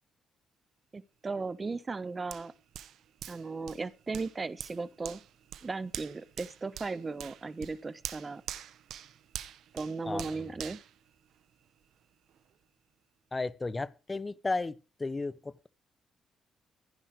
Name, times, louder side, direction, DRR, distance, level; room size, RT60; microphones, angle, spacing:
voice 1, 0.9-2.5 3.3-5.2 5.6-8.4 9.7-10.8, right 3 dB, 30° right, 1.0 m, -36 dB
Hands, 2.3-11.8 12.3-12.4, right 11 dB, 75° right, 1.0 m, -45 dB
voice 2, 13.3-15.7, left 3 dB, 25° left, 1.0 m, -34 dB
15.0 x 10.0 x 4.8 m
cardioid pair, 90°, 0 cm